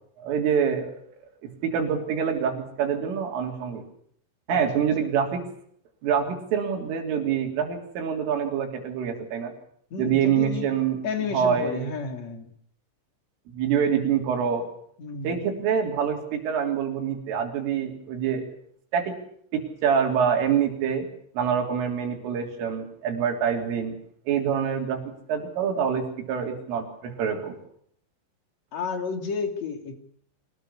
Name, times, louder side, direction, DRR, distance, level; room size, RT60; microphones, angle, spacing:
voice 1, 0.2-0.9 1.4-3.8 4.5-5.4 6.0-9.5 10.0-11.0 11.3-11.9 13.5-14.7 15.2-18.5 18.9-19.2 19.5-21.1 21.4-24.0 24.3-27.6, right 7 dB, 90° right, 2 dB, 6.0 m, -26 dB
voice 2, 9.9-10.7 11.0-12.5 15.0-15.5 28.7-30.0, left 5 dB, 40° left, 7 dB, 3.7 m, -31 dB
25.5 x 19.5 x 8.4 m, 0.65 s
omnidirectional pair, 5.6 m